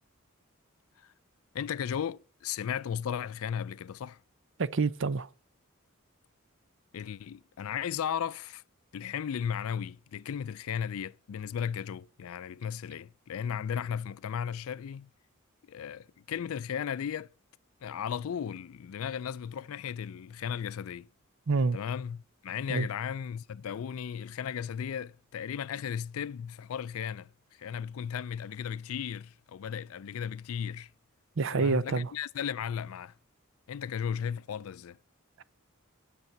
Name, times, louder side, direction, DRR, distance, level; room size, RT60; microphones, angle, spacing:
voice 1, 1.5-4.2 6.9-8.6 8.9-15.1 15.7-17.3 17.8-21.1 21.7-30.9 31.5-33.1 33.7-35.0, left 8 dB, 80° left, 0.4 m, -35 dB
voice 2, 4.6-5.3 21.5-21.8 22.7-22.9 31.4-32.1, right 4 dB, 60° right, 0.6 m, -27 dB
10.5 x 6.8 x 5.6 m
head